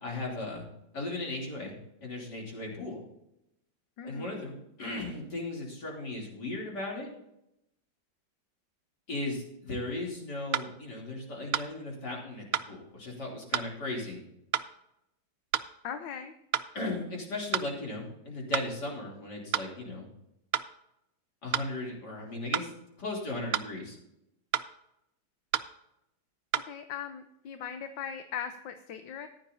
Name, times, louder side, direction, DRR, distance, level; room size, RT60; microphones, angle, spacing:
voice 1, 0.0-0.6 0.9-3.0 4.0-7.1 9.1-14.2 16.7-20.1 21.4-22.7 23.0-24.0, left 2 dB, 55° left, -2 dB, 3.6 m, -37 dB
voice 2, 4.0-4.3 15.8-16.3 26.7-29.3, left 8 dB, 75° left, 8 dB, 1.4 m, -39 dB
sound 1, 9.7-9.8 10.5-10.7 11.5-11.7 12.5-12.7 13.5-13.7 14.5-14.7 15.5-15.7 16.5-16.7 17.5-17.7 18.5-18.7 19.5-19.7 20.5-20.7 21.5-21.7 22.5-22.7 23.5-23.7 24.5-24.7 25.5-25.7 26.5-26.7, right 12 dB, 75° right, 1.2 m, -30 dB
14.5 x 10.5 x 2.7 m, 0.82 s
omnidirectional pair, 2.1 m